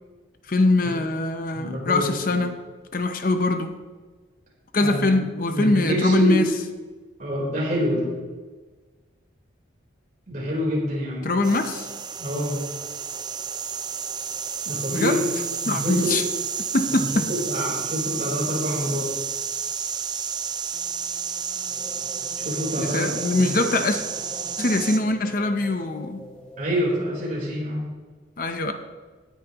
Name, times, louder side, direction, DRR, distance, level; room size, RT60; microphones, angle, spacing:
voice 1, 0.5-2.6 2.9-3.8 4.7-6.5 11.2-11.9 14.9-15.2 15.6-16.2 16.6-17.3 22.8-24.0 24.6-26.2 28.4-28.7, left 2 dB, 45° left, 8 dB, 0.7 m, -23 dB
voice 2, 1.6-2.1 4.8-5.2 5.5-6.5 7.2-8.1 10.3-11.3 12.2-12.6 14.7-15.2 15.6-16.2 16.9-19.2 22.4-23.7 26.6-27.9, equal, 40° right, -3 dB, 3.9 m, -26 dB
sound 1, 11.4-25.0, right 7 dB, 20° right, 0.5 m, -31 dB
sound 2, 21.7-27.1, equal, 5° left, 1.5 m, -44 dB
17.5 x 10.0 x 3.0 m, 1.4 s
head